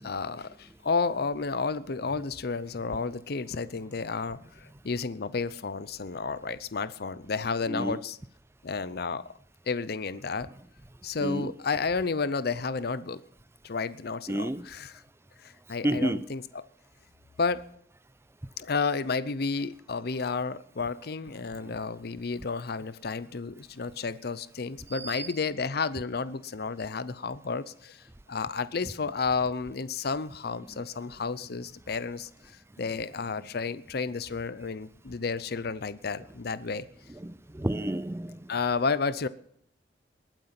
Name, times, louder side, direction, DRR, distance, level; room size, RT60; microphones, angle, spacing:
voice 1, 0.0-8.2 8.6-9.3 9.7-10.5 11.0-13.2 13.6-15.0 15.4-16.6 17.4-17.6 18.6-28.0 28.3-32.3 32.8-36.9 38.5-39.3, left 4 dB, 60° left, 0.7 m, -31 dB
voice 2, 7.7-8.0 11.2-11.5 14.3-14.6 15.8-16.2 24.9-25.3 37.2-38.5, right 1 dB, 15° right, 0.5 m, -31 dB
20.5 x 9.2 x 5.9 m
head